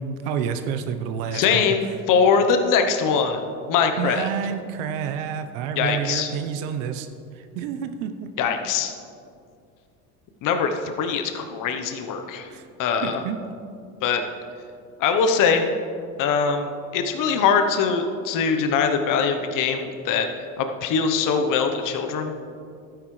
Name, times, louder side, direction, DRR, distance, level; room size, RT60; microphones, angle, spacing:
voice 1, 0.0-1.6 4.0-7.1 7.3-8.3 12.5-12.6 13.0-13.4, right 7 dB, 75° right, 8 dB, 0.9 m, -29 dB
voice 2, 1.3-4.3 5.8-6.3 8.4-8.9 10.4-12.5 12.8-13.2 14.0-14.2 15.0-15.6 16.2-22.3, left 6 dB, 55° left, 6 dB, 1.0 m, -22 dB
12.5 x 9.6 x 3.2 m, 2.4 s
supercardioid pair, 95°, 39 cm